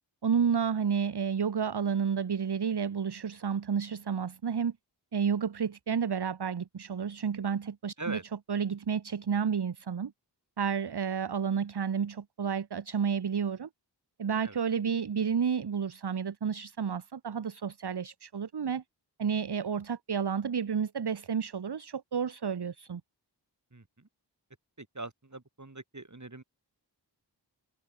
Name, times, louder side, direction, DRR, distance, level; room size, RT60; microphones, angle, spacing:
voice 1, 0.2-4.7 5.1-8.2 8.5-10.1 10.6-13.7 14.2-18.8 19.2-23.0, right 7 dB, 60° right, 1.0 m, -31 dB
voice 2, 23.7-24.1 24.8-26.4, right 2 dB, 40° right, 5.9 m, -42 dB
wide cardioid pair, 55°, 44 cm